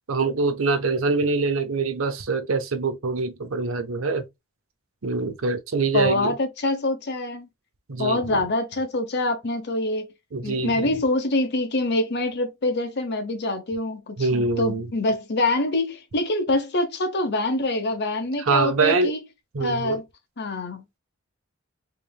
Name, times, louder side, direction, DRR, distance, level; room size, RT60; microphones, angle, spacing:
voice 1, 0.1-4.2 5.0-6.3 7.9-8.4 10.3-11.0 14.2-14.9 18.4-19.1 19.5-20.0, right 3 dB, 75° right, 0.8 m, -24 dB
voice 2, 5.9-7.5 8.0-10.1 10.4-19.2 19.6-20.0 20.4-20.8, left 2 dB, 55° left, 1.0 m, -25 dB
4.0 x 3.3 x 2.3 m
head